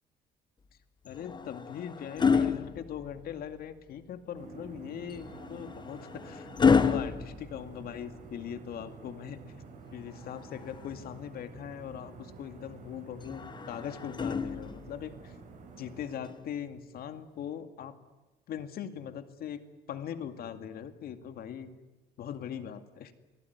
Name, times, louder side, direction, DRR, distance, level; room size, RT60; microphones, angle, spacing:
voice 1, 1.0-6.5 6.8-9.4 9.9-15.4 15.8-18.0 18.5-19.6 19.9-21.7 22.2-23.1, left 9 dB, 65° left, 9 dB, 2.3 m, -40 dB
sound 1, 1.1-3.5 5.1-8.3 10.1-11.2 13.2-15.0 16.3-16.5, left 5 dB, 25° left, 1.3 m, -30 dB
sound 2, 4.3-16.2, right 4 dB, 50° right, 7.4 m, -49 dB
28.5 x 18.5 x 9.6 m, 1.1 s
cardioid pair, 120°, 17 cm